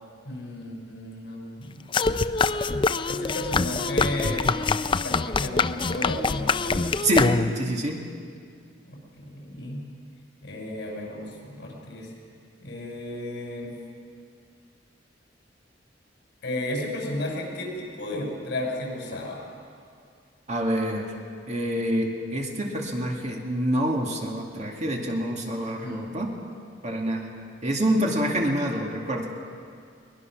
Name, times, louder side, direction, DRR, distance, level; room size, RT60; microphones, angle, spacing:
voice 1, 0.2-1.8 3.1-4.5 5.0-6.8 8.8-9.8 10.4-12.1 12.6-13.8 16.4-19.5 25.8-26.1, left 1 dB, 65° left, -1 dB, 5.7 m, -33 dB
sound 1, 1.9-7.7, left 4 dB, 25° left, 0.4 m, -25 dB
voice 2, 7.0-8.0 20.5-21.1 21.5-26.3 26.8-27.3 27.6-29.3, right 1 dB, 40° right, 0 dB, 2.3 m, -26 dB
22.5 x 20.0 x 6.1 m, 2.3 s
head